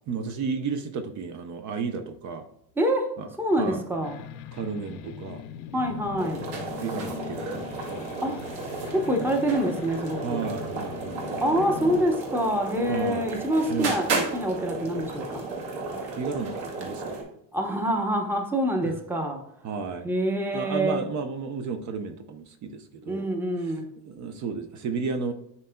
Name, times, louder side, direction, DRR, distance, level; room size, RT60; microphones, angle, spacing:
voice 1, 0.1-2.5 3.2-3.3 3.6-3.8 4.5-5.4 6.8-8.1 10.2-11.4 12.9-13.3 13.7-14.0 16.1-17.3 18.8-19.0 19.6-20.1 20.5-23.3 23.6-23.8 24.0-25.3, right 5 dB, 45° right, 7 dB, 0.8 m, -33 dB
voice 2, 2.8-3.1 3.4-4.2 5.7-6.5 8.2-8.4 8.9-10.5 11.4-15.4 17.5-19.4 20.0-21.0 23.0-23.9, equal, 5° right, 3 dB, 0.8 m, -26 dB
sound 1, 4.0-12.0, left 10 dB, 85° left, 0.8 m, -40 dB
sound 2, 6.2-17.2, right 3 dB, 65° right, 2.3 m, -33 dB
11.5 x 4.3 x 2.2 m, 0.79 s
cardioid pair, 155°, 40 cm